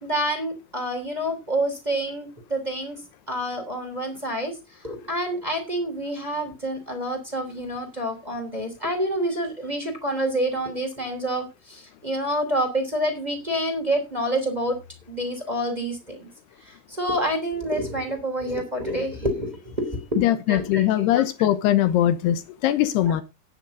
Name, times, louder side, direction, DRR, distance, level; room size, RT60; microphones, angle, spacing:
voice 1, 0.0-3.0 3.3-4.6 4.8-14.8 15.1-16.3 16.6-21.2 23.1-23.2, right 1 dB, 10° right, 2.6 m, -28 dB
voice 2, 20.2-23.2, left 12 dB, 75° left, 2.5 m, -21 dB
10.5 x 9.2 x 5.1 m
omnidirectional pair, 5.7 m